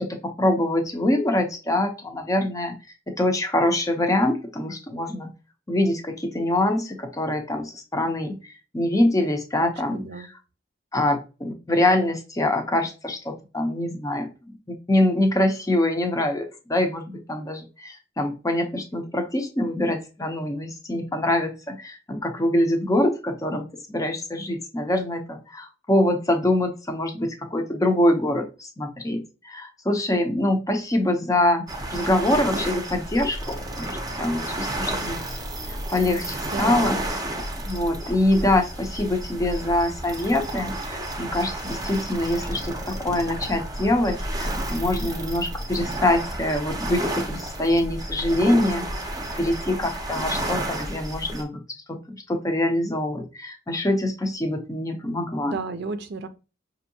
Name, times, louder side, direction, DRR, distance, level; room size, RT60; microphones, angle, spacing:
voice 1, 0.0-2.8 3.1-5.3 5.7-10.3 10.9-31.6 31.9-35.2 35.7-37.0 37.6-48.9 49.3-51.6 51.9-55.6, left 1 dB, 20° left, 5 dB, 0.6 m, -24 dB
voice 2, 9.6-10.3 36.5-37.0 55.5-56.3, right 4 dB, 60° right, 9 dB, 0.5 m, -33 dB
sound 1, 31.7-51.4, right 1 dB, 20° right, 0.7 m, -31 dB
5.4 x 2.7 x 2.7 m, 0.31 s
head